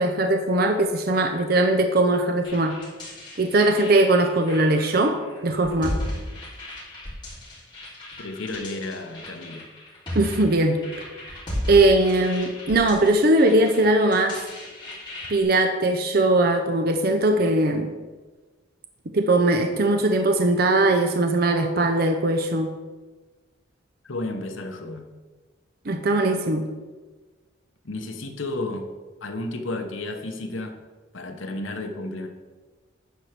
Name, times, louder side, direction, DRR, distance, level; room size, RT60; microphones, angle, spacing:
voice 1, 0.0-2.7 3.4-6.0 10.1-10.8 11.7-14.4 15.3-17.9 19.1-22.7 25.9-26.7, right 2 dB, 50° right, 6 dB, 0.6 m, -20 dB
sound 1, 2.4-15.4, left 1 dB, 25° left, 3.2 m, -36 dB
voice 2, 8.2-9.7 24.0-25.1 27.8-28.9 29.2-30.7 31.1-32.3, left 2 dB, 75° left, 5 dB, 1.2 m, -32 dB
10.5 x 4.5 x 6.6 m, 1.3 s
head